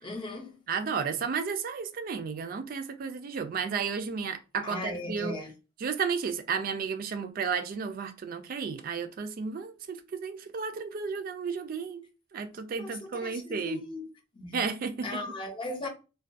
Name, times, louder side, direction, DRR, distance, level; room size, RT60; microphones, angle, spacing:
voice 1, 0.0-0.6 4.6-5.5 12.8-14.1 14.3-14.7 15.0-15.9, left 2 dB, 25° left, 0.5 m, -37 dB
voice 2, 0.7-5.3 5.8-12.1 12.3-13.8 14.5-15.2, right 5 dB, 45° right, 0.3 m, -33 dB
2.3 x 2.2 x 2.5 m
head